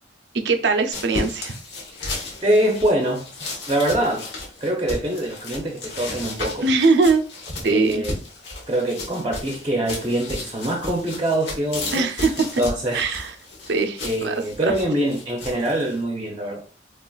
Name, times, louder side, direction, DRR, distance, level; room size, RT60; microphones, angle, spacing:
voice 1, 0.3-1.5 6.6-7.2 7.6-8.0 11.9-12.4 12.9-13.3 13.7-14.4 14.6-14.7, right 4 dB, 65° right, 0.5 m, -21 dB
sound 1, 0.9-16.0, left 2 dB, 70° left, 1.1 m, -34 dB
voice 2, 2.4-3.2 3.7-4.2 4.6-6.7 7.6-8.1 8.7-13.1 14.0-16.6, right 1 dB, 25° right, 0.6 m, -24 dB
3.8 x 2.4 x 2.3 m
head